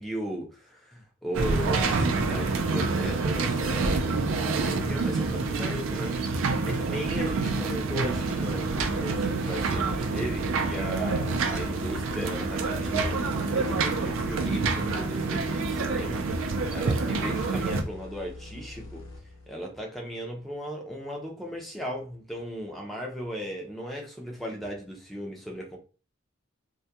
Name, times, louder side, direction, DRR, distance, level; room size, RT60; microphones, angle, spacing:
voice 1, 0.0-13.3 13.5-19.0 19.5-25.8, equal, ahead, 0.5 m, -36 dB
sound 1, 1.3-17.8, right 3 dB, 80° right, 0.4 m, -27 dB
sound 2, 8.1-19.8, left 2 dB, 85° left, 0.7 m, -44 dB
2.3 x 2.1 x 2.7 m
head